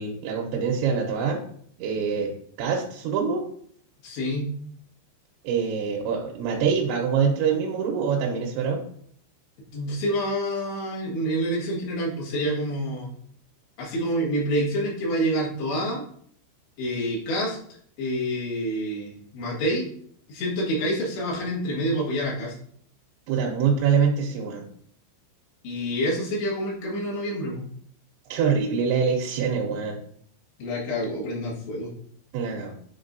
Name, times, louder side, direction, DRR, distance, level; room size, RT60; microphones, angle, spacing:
voice 1, 0.0-1.4 1.8-2.3 2.6-3.4 5.4-8.8 23.3-24.6 28.3-30.0 32.3-32.8, right 6 dB, 80° right, 0 dB, 3.0 m, -24 dB
voice 2, 4.0-4.5 9.7-13.1 13.8-16.0 16.8-17.6 18.0-19.9 20.3-22.5 25.6-27.6 30.6-31.9, equal, 70° left, -6 dB, 3.8 m, -27 dB
9.4 x 3.9 x 2.6 m, 0.63 s
omnidirectional pair, 5.3 m